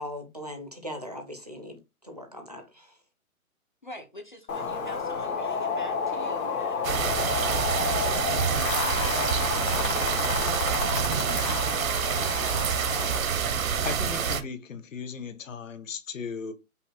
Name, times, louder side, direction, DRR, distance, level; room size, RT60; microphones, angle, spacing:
voice 1, 0.0-3.0, left 1 dB, 30° right, 0.4 m, -40 dB
voice 2, 3.8-7.6 8.0-13.3, left 1 dB, 35° left, 0.4 m, -45 dB
sound 1, 4.5-13.2, left 5 dB, 80° left, 1.4 m, -31 dB
sound 2, 6.8-14.4, right 7 dB, 70° right, 0.8 m, -27 dB
voice 3, 13.8-16.5, left 5 dB, 60° left, 1.0 m, -36 dB
5.4 x 2.1 x 4.2 m
hypercardioid pair, 175°, 43 cm